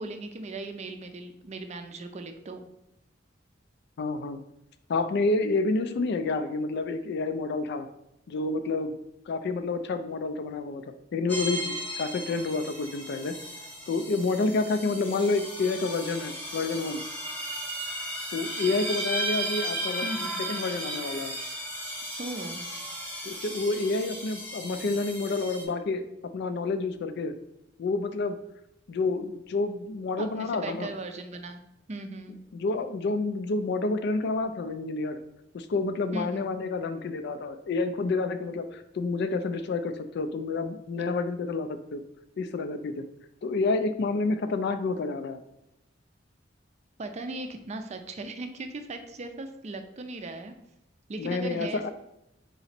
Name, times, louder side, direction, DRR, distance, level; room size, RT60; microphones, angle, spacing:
voice 1, 0.0-2.6 20.0-20.5 22.2-22.6 30.2-31.6 31.9-32.4 36.1-36.5 47.0-50.5 51.1-51.9, right 2 dB, 35° right, 7 dB, 0.4 m, -38 dB
voice 2, 4.0-4.4 4.9-7.9 8.3-9.0 9.3-10.8 11.1-13.3 13.9-17.0 18.3-20.1 20.5-21.3 23.2-26.0 26.3-27.3 27.8-28.4 28.9-30.9 32.5-35.2 35.5-42.0 42.4-43.0 43.4-45.4 51.2-51.9, left 3 dB, 60° left, 9 dB, 0.4 m, -29 dB
sound 1, 11.3-25.6, right 1 dB, 10° left, 0.9 m, -35 dB
4.0 x 2.9 x 4.2 m, 0.85 s
head